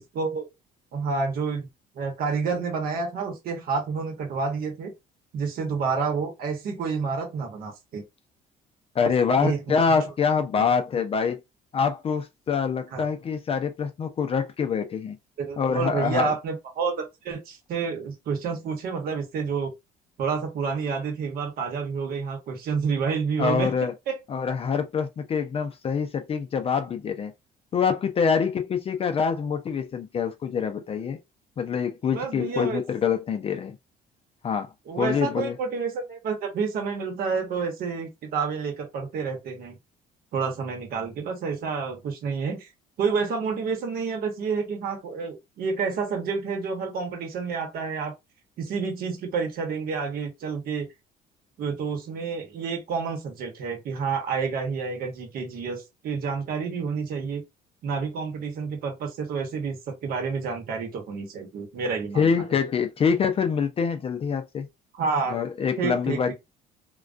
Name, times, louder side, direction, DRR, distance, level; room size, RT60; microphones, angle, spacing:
voice 1, 0.1-0.5 0.9-1.7 1.9-4.9 5.3-8.0 9.4-9.7 10.6-10.7 12.9-13.0 15.4-19.7 20.2-23.7 24.1-24.2 32.1-32.8 34.9-39.8 40.3-42.7 43.0-48.1 48.6-50.9 51.6-57.4 57.8-62.2 64.9-65.4 65.8-66.3, right 5 dB, 60° right, 0.9 m, -29 dB
voice 2, 8.9-11.4 11.7-15.2 15.6-16.3 23.4-23.9 24.3-27.3 27.7-31.2 31.6-33.8 34.4-35.6 62.2-64.7 65.3-66.3, left 6 dB, 35° left, 0.4 m, -25 dB
2.2 x 2.2 x 2.5 m
cardioid pair, 110°, 17 cm